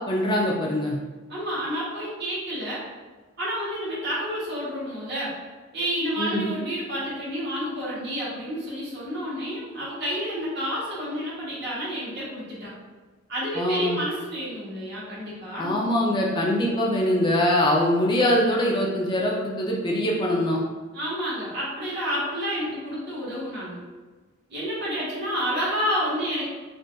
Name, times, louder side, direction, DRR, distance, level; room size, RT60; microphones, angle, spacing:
voice 1, 0.1-1.0 6.2-6.4 13.6-14.0 15.6-20.6, left 1 dB, 25° left, -2 dB, 0.4 m, -23 dB
voice 2, 1.3-2.8 3.4-5.3 5.7-12.7 13.3-15.8 20.9-23.8 24.5-26.5, equal, 55° right, -8 dB, 1.2 m, -30 dB
3.7 x 2.4 x 2.2 m, 1.3 s
head